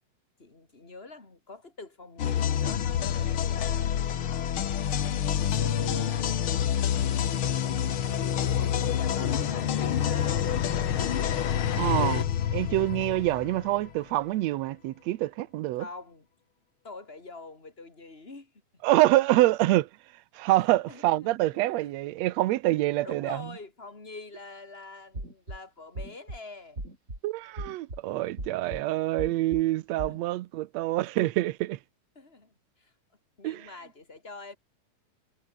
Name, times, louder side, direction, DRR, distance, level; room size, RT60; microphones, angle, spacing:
voice 1, 0.4-3.9 4.2-6.9 7.8-10.6 15.8-16.3 16.8-18.5 20.9-21.9 23.0-26.8 30.1-30.2 32.2-32.9 33.4-34.6, left 3 dB, 20° left, 3.8 m, -45 dB
sound 1, 2.2-13.9, left 9 dB, 55° left, 1.9 m, -27 dB
voice 2, 11.8-15.9 18.8-19.9 20.4-23.4 27.2-31.8 33.4-33.7, right 16 dB, 75° right, 1.9 m, -26 dB
sound 2, 25.1-25.6 26.0-26.4 26.8-27.2 27.6-28.0 28.4-28.8 29.2-29.6 30.0-30.2, right 1 dB, 25° right, 7.4 m, -37 dB
omnidirectional pair, 3.3 m